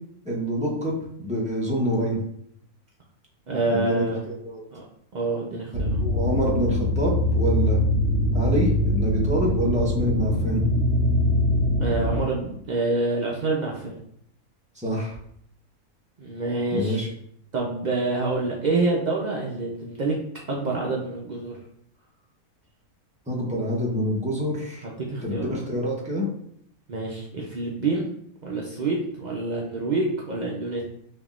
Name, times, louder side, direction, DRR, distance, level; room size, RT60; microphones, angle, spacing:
voice 1, 0.2-2.2 3.7-4.6 6.0-7.8 8.3-10.6 14.8-15.1 16.7-17.1 23.3-24.9 25.2-26.3, equal, 10° right, -3 dB, 0.5 m, -26 dB
voice 2, 3.5-4.2 4.7-4.8 5.1-6.0 11.8-14.0 16.2-17.0 17.5-20.1 20.5-21.5 24.8-25.6 26.9-28.1 28.4-30.8, right 2 dB, 85° right, -2 dB, 0.4 m, -27 dB
sound 1, 5.7-12.2, left 1 dB, 40° right, 1.7 m, -23 dB
5.4 x 2.7 x 2.4 m, 0.69 s
omnidirectional pair, 1.5 m